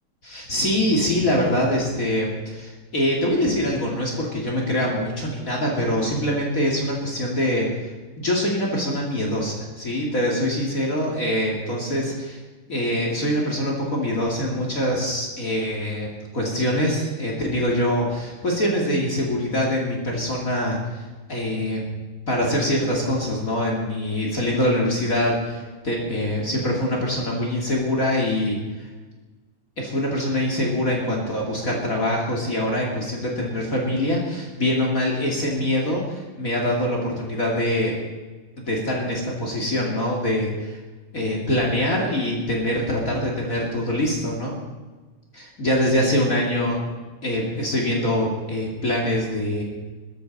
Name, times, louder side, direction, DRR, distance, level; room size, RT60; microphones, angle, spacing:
voice 1, 0.2-7.7 8.2-12.4 12.7-16.1 16.3-21.9 22.3-28.6 29.8-38.0 38.6-40.8 41.1-44.5 45.3-46.8 47.2-49.6, left 1 dB, 40° left, -2 dB, 2.7 m, -24 dB
19.5 x 13.5 x 4.1 m, 1.3 s
omnidirectional pair, 2.3 m